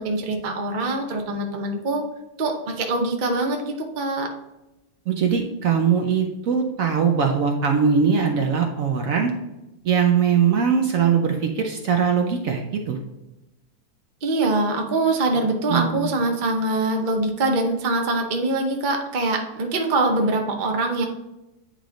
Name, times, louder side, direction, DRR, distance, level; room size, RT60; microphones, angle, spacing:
voice 1, 0.0-2.0 2.4-4.3 14.2-21.1, right 2 dB, 40° right, 3 dB, 0.8 m, -23 dB
voice 2, 5.1-9.3 9.8-13.0 15.7-16.2, right 6 dB, 65° right, 3 dB, 1.0 m, -21 dB
9.1 x 3.3 x 3.8 m, 0.97 s
omnidirectional pair, 1.6 m